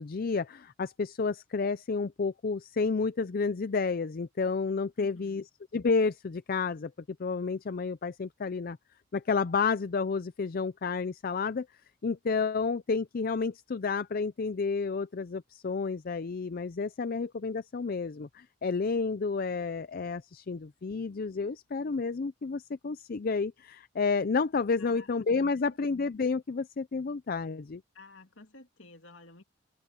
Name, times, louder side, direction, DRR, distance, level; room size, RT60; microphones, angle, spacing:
voice 1, 0.0-5.4 5.7-6.9 7.2-8.8 9.1-11.7 12.0-27.8, left 4 dB, 45° left, 0.4 m, -30 dB
voice 2, 5.0-5.4 24.8-25.8 27.9-29.4, left 3 dB, 65° left, 2.9 m, -53 dB
open air
head